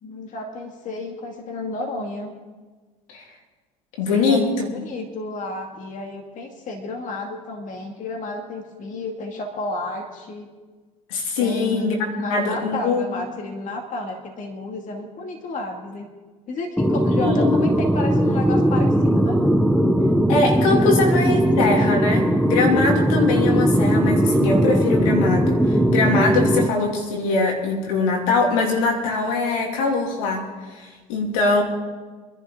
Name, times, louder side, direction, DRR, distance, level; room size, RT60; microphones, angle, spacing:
voice 1, 0.0-2.3 4.1-10.5 11.4-16.1 16.5-19.4 20.8-20.9 21.3-21.6, left 2 dB, 50° left, 2 dB, 2.3 m, -32 dB
voice 2, 4.0-4.7 11.1-12.0 12.3-13.2 17.2-17.5 20.3-30.5 30.8-31.6, left 3 dB, 80° left, 1 dB, 2.8 m, -22 dB
sound 1, 16.8-26.7, equal, ahead, 0.8 m, -19 dB
25.0 x 11.0 x 3.8 m, 1.3 s
hypercardioid pair, 80°, 17 cm